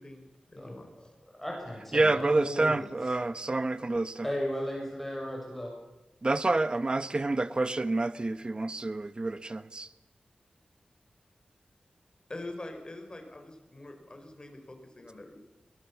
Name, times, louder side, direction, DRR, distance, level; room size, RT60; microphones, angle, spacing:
voice 1, 0.0-1.1 12.3-15.4, left 2 dB, 30° left, 4.6 m, -44 dB
voice 2, 0.6-2.9 4.2-5.7, equal, 5° left, 6.8 m, -36 dB
voice 3, 1.9-4.3 6.2-9.9, right 2 dB, 35° right, 1.1 m, -28 dB
22.5 x 19.0 x 7.2 m
wide cardioid pair, 75°, 3 cm